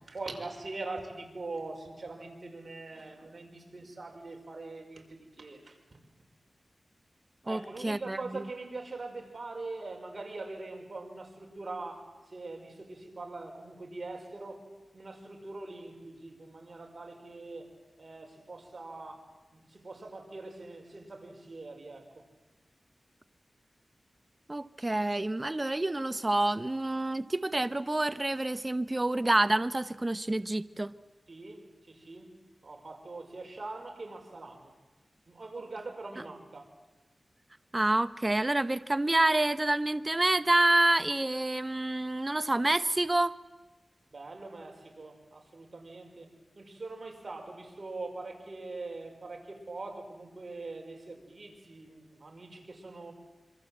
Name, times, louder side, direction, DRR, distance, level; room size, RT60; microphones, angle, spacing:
voice 1, 0.0-5.8 7.5-14.7 14.9-22.2 31.3-34.7 35.3-36.7 44.1-46.3 46.5-53.1, right 3 dB, 55° right, 5.8 m, -43 dB
voice 2, 7.5-8.4 24.5-30.9 37.7-43.3, right 2 dB, 30° right, 1.0 m, -28 dB
26.0 x 24.5 x 8.0 m
cardioid pair, 45°, 0 cm